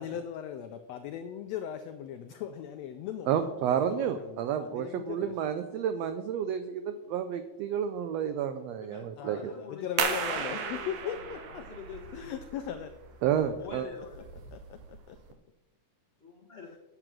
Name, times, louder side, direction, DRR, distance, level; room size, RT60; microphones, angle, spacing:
voice 1, 0.0-5.4 9.2-11.6 12.1-12.9 13.6-13.7 14.5-15.2, left 9 dB, 85° left, 9 dB, 1.4 m, -39 dB
voice 2, 3.3-9.5 13.2-13.9, right 8 dB, 85° right, 9 dB, 1.4 m, -30 dB
voice 3, 8.8-9.9 10.1-12.5 13.3-14.3 16.2-16.8, left 4 dB, 30° left, -2 dB, 1.2 m, -45 dB
sound 1, 10.0-15.3, right 6 dB, 70° right, 2.1 m, -36 dB
8.0 x 7.6 x 6.0 m, 1.0 s
omnidirectional pair, 3.6 m